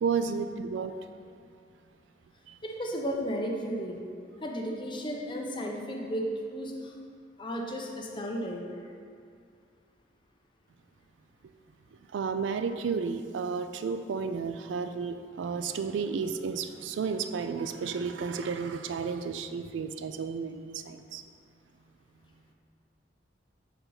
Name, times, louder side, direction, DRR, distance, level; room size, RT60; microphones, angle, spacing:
voice 1, 0.0-0.9 2.5-2.6 12.1-21.2, right 5 dB, 80° right, 9 dB, 0.3 m, -32 dB
voice 2, 2.6-4.0 4.4-6.9 7.4-8.6, equal, 25° left, 0 dB, 0.7 m, -34 dB
6.5 x 4.5 x 3.9 m, 2.3 s
head